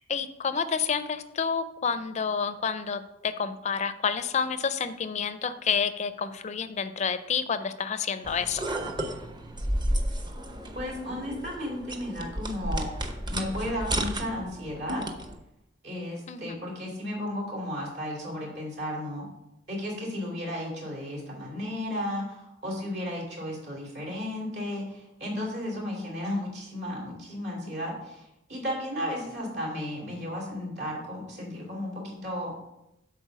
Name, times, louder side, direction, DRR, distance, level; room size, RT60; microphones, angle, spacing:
voice 1, 0.1-8.7 16.3-16.6, left 6 dB, 40° left, 12 dB, 0.4 m, -29 dB
sound 1, 8.2-15.4, right 1 dB, 25° right, 0.7 m, -32 dB
voice 2, 10.7-12.9 13.3-15.1 15.8-19.3 19.7-32.5, left 1 dB, 65° right, -2 dB, 3.1 m, -34 dB
8.0 x 4.3 x 6.2 m, 0.88 s
head